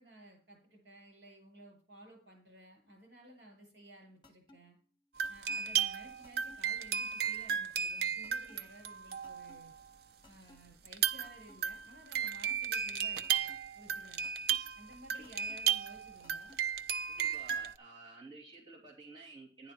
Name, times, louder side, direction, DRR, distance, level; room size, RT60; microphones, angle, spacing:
voice 1, 0.0-4.8 5.3-9.7 10.3-14.3 14.8-16.5, right 1 dB, 75° right, 2 dB, 6.8 m, -56 dB
sound 1, 4.2-4.6 5.2-5.6 6.2-6.6 7.2-7.6 8.2-8.6 9.2-9.6 10.2-10.6 11.2-11.6 12.2-12.6 13.2-13.6 14.2-14.6 15.2-15.6 16.2-16.6 17.2-17.6, left 2 dB, 25° left, 1.5 m, -58 dB
sound 2, 5.2-9.7 10.9-17.7, right 8 dB, 60° right, 0.6 m, -34 dB
voice 2, 17.1-19.7, right 3 dB, 25° right, -5 dB, 2.6 m, -52 dB
11.0 x 10.0 x 4.6 m, 0.41 s
head